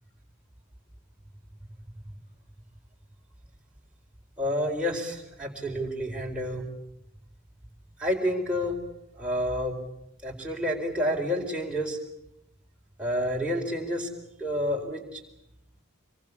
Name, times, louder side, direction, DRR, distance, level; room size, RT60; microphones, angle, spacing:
voice 1, 4.4-6.7 8.0-8.8 9.2-9.7 10.2-12.0 13.0-14.1 14.4-15.2, equal, 5° right, -2 dB, 4.4 m, -29 dB
26.0 x 23.0 x 8.5 m, 0.84 s
head